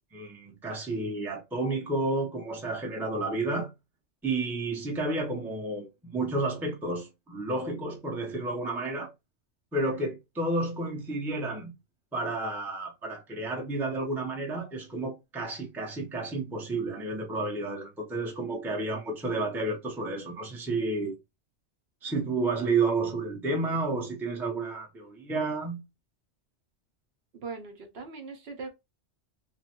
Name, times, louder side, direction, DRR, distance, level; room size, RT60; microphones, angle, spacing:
voice 1, 0.1-3.7 4.2-9.1 9.7-11.7 12.1-21.2 22.0-25.8, right 2 dB, ahead, 0.5 m, -31 dB
voice 2, 27.3-28.7, right 4 dB, 60° right, 0.9 m, -40 dB
3.1 x 2.1 x 2.8 m
omnidirectional pair, 1.2 m